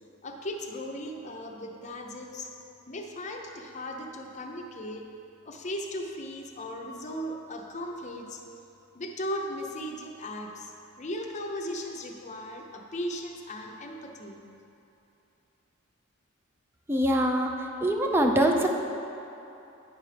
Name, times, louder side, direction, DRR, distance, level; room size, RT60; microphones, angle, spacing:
voice 1, 0.2-2.5 2.9-5.1 5.4-8.4 8.9-14.4, equal, 35° left, 2 dB, 0.6 m, -37 dB
voice 2, 16.9-17.5 17.8-18.7, right 1 dB, 10° right, 3 dB, 0.4 m, -23 dB
9.6 x 3.3 x 5.7 m, 2.9 s
head